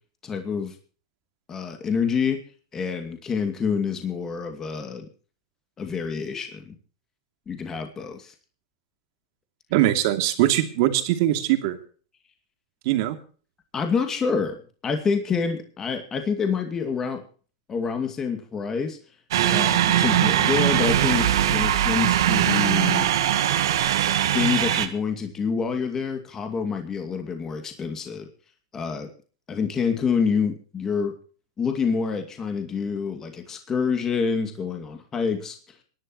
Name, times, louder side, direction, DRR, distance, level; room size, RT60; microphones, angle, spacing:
voice 1, 0.2-0.8 1.5-2.4 2.7-5.1 5.8-6.8 7.5-8.3 13.7-17.2 17.7-19.0 19.5-23.1 24.2-28.3 28.7-29.1 29.5-31.1 31.6-35.6, left 5 dB, 20° left, 6 dB, 2.4 m, -27 dB
voice 2, 9.7-11.8 12.8-13.2, right 14 dB, 60° right, 7 dB, 2.7 m, -21 dB
sound 1, 19.3-24.9, right 11 dB, 80° right, 2.0 m, -21 dB
26.0 x 11.5 x 3.1 m, 0.40 s
supercardioid pair, 140°, 2 cm